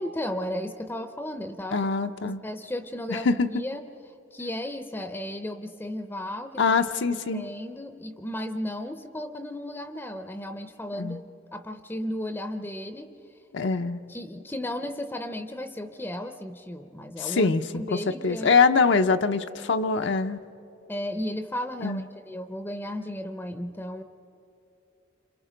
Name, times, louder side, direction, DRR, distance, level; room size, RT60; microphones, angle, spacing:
voice 1, 0.0-1.9 2.2-3.8 4.3-6.7 7.1-11.2 11.5-13.1 14.1-18.5 20.9-24.0, left 1 dB, 10° left, 8 dB, 0.6 m, -34 dB
voice 2, 1.7-2.4 3.1-3.5 6.6-7.4 10.9-11.2 13.5-14.0 17.2-20.4 21.8-22.0, left 4 dB, 60° left, 8 dB, 0.6 m, -24 dB
28.0 x 26.5 x 5.1 m, 2.9 s
head